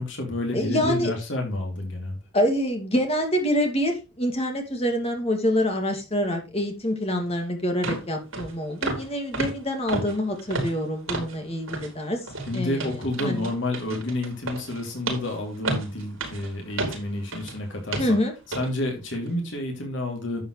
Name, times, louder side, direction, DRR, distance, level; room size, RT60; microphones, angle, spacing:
voice 1, 0.0-2.2 12.5-18.2 18.5-20.4, left 1 dB, 60° left, 2 dB, 3.0 m, -29 dB
voice 2, 0.5-1.1 2.3-12.2 12.5-12.9 13.2-13.5 18.0-18.3, equal, 30° left, 4 dB, 2.4 m, -26 dB
sound 1, 7.2-7.3 7.8-8.1 8.3-8.5 8.8-9.1 9.3-11.4 11.7-11.9 12.3-17.6 17.9-18.1 18.5-18.7 19.1-19.3, right 2 dB, 75° right, 4.5 m, -32 dB
11.0 x 7.8 x 3.2 m, 0.26 s
head